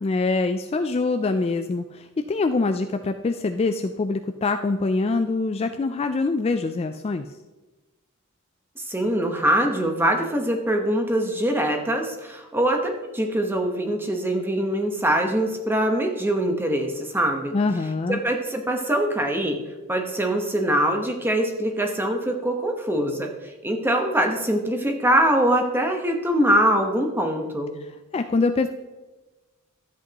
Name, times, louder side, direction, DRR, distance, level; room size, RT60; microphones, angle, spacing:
voice 1, 0.0-7.2 17.5-18.2 28.1-28.7, left 3 dB, 25° left, 7 dB, 0.3 m, -24 dB
voice 2, 8.8-17.5 18.1-19.6 19.9-27.7, right 1 dB, 10° right, 3 dB, 1.1 m, -23 dB
13.0 x 8.3 x 3.0 m, 1.1 s
head